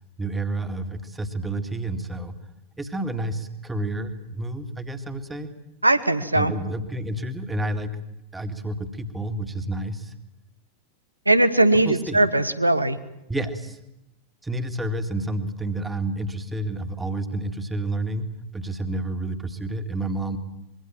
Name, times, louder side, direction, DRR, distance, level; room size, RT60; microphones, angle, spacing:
voice 1, 0.2-2.4 2.8-5.5 6.3-7.9 8.3-10.1 11.7-12.2 13.3-13.8 14.4-18.3 18.5-20.4, right 2 dB, 10° right, 6 dB, 2.1 m, -29 dB
voice 2, 5.8-6.5 11.3-13.0, right 2 dB, 85° right, 12 dB, 1.3 m, -19 dB
25.0 x 22.5 x 7.5 m, 0.88 s
figure-of-eight pair, 90°, 0 cm